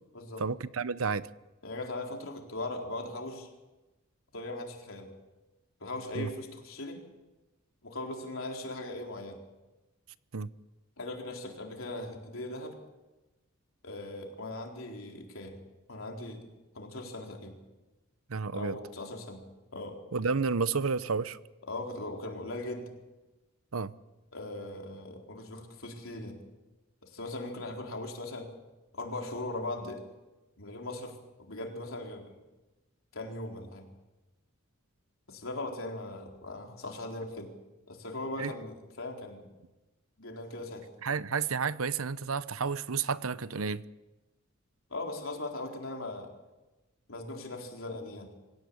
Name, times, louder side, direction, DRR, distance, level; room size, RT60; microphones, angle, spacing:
voice 1, 0.4-1.3 6.1-6.3 10.3-10.5 18.3-18.8 20.1-21.4 23.7-23.9 38.4-38.5 41.0-43.8, right 5 dB, 80° right, 0.8 m, -31 dB
voice 2, 1.6-3.5 4.3-5.1 5.8-7.0 7.8-9.4 11.0-12.8 13.8-15.6 15.9-16.5 16.7-17.5 18.5-19.4 19.7-20.0 21.7-22.9 24.3-26.4 27.0-28.5 28.9-30.0 30.6-32.3 33.1-33.9 35.3-37.5 37.9-39.5 40.2-40.9 44.9-46.3 47.1-48.3, left 2 dB, 70° left, 4.1 m, -39 dB
26.0 x 16.0 x 8.7 m
head